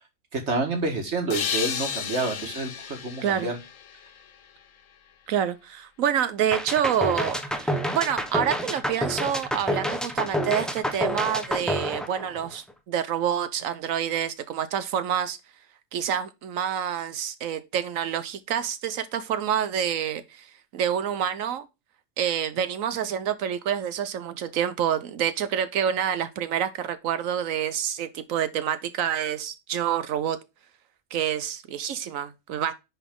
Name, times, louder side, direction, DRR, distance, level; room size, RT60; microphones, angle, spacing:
voice 1, 0.3-3.6, right 3 dB, 55° right, 2.1 m, -28 dB
sound 1, 1.3-4.8, left 7 dB, 70° left, 1.3 m, -33 dB
voice 2, 5.3-15.4 15.9-20.5 20.7-21.7 22.2-30.4 31.1-32.7, right 9 dB, 80° right, 1.1 m, -27 dB
sound 2, 6.5-12.7, equal, ahead, 0.7 m, -28 dB
10.0 x 4.1 x 3.7 m
omnidirectional pair, 1.4 m